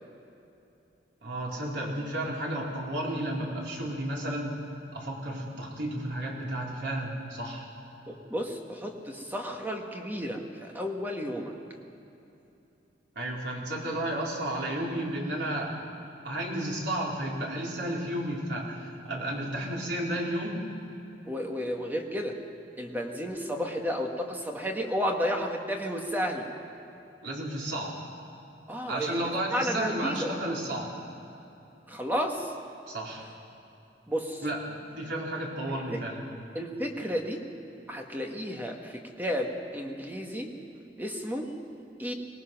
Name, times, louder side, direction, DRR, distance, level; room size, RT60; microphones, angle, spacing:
voice 1, 1.2-4.6 4.9-7.7 13.2-15.7 16.2-20.7 27.2-28.0 28.9-30.9 32.9-33.3 34.4-36.2, right 1 dB, 75° right, -3 dB, 4.0 m, -32 dB
voice 2, 8.1-11.5 21.3-22.4 22.8-26.5 28.7-29.2 29.5-30.3 31.9-32.5 34.1-34.4 35.0-35.1 35.7-36.0 36.5-37.4 37.9-40.5 41.0-41.6 42.0-42.1, equal, 10° right, 2 dB, 1.6 m, -32 dB
24.0 x 19.0 x 6.0 m, 2.9 s
head